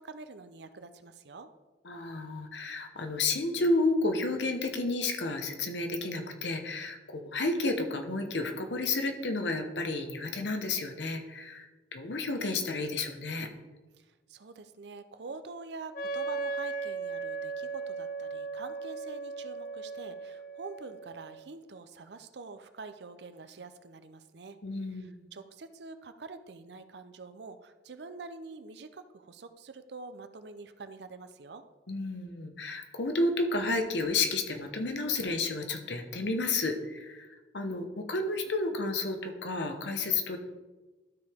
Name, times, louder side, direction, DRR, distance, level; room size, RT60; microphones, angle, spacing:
voice 1, 0.0-1.5 14.0-24.6 24.9-31.6, right 3 dB, 65° right, 10 dB, 0.6 m, -46 dB
voice 2, 1.8-13.5 24.6-25.1 31.9-37.3 37.5-40.4, left 2 dB, 70° left, 6 dB, 0.9 m, -31 dB
Wind instrument woodwind instrument, 15.9-21.6, right 4 dB, 50° left, 0.5 m, -37 dB
12.5 x 4.8 x 3.5 m, 1.2 s
head